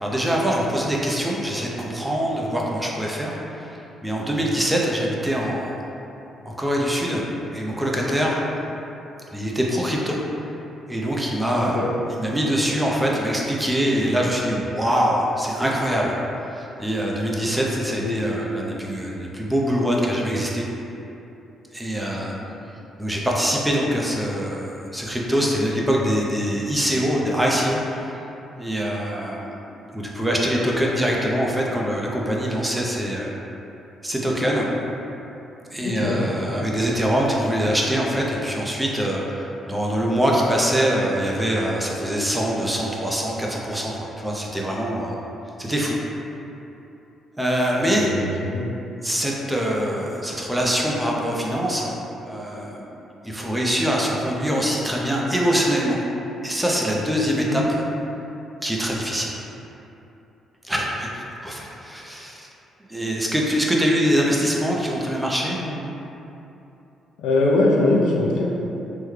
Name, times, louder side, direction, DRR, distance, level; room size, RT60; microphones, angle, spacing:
voice 1, 0.0-3.8 4.0-5.8 6.4-8.4 9.3-10.2 10.9-11.9 12.2-16.2 16.6-20.6 21.7-22.4 23.0-28.2 28.6-29.6 29.9-33.3 34.0-34.7 35.7-45.1 45.6-46.0 47.4-48.1 49.0-52.0 52.2-52.9 53.2-56.0 56.4-57.8 58.6-59.3 60.6-62.5 62.9-65.9, equal, 10° right, -3 dB, 0.5 m, -24 dB
voice 2, 11.5-11.9 18.0-18.2 22.2-22.3 35.8-36.2 48.0-48.7 57.5-57.6 67.2-68.4, left 2 dB, 85° left, -3 dB, 0.5 m, -22 dB
3.5 x 2.2 x 3.1 m, 2.9 s
cardioid pair, 90°, 0 cm